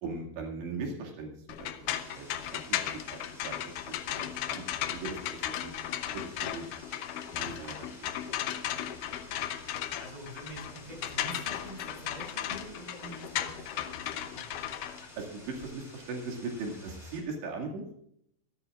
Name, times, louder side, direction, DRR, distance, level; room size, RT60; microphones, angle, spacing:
voice 1, 0.0-3.8 4.1-4.6 4.9-6.6 7.4-8.1 15.0-17.9, right 3 dB, 85° right, 0 dB, 4.5 m, -40 dB
sound 1, 1.5-15.7, left 11 dB, 90° left, 1.8 m, -36 dB
sound 2, 1.9-17.2, left 1 dB, 10° left, 3.8 m, -52 dB
voice 2, 10.0-14.5, right 1 dB, 10° right, -1 dB, 7.2 m, -46 dB
25.5 x 13.5 x 2.5 m, 0.70 s
omnidirectional pair, 4.9 m